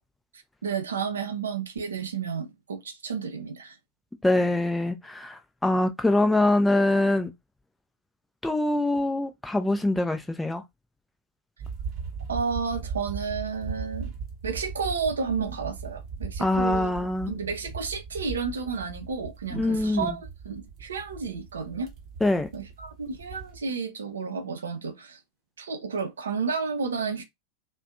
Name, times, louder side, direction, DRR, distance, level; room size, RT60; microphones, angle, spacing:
voice 1, 0.3-3.8 12.3-14.1 14.4-16.9 17.3-21.9 22.5-25.2 25.6-27.2, right 5 dB, 70° right, 0.5 m, -31 dB
voice 2, 4.2-7.3 8.4-10.6 16.4-17.3 19.5-20.1 22.2-22.5, left 2 dB, 5° left, 0.3 m, -24 dB
sound 1, 11.6-23.6, right 5 dB, 35° right, 0.8 m, -38 dB
2.5 x 2.2 x 2.4 m
figure-of-eight pair, 90°, 0 cm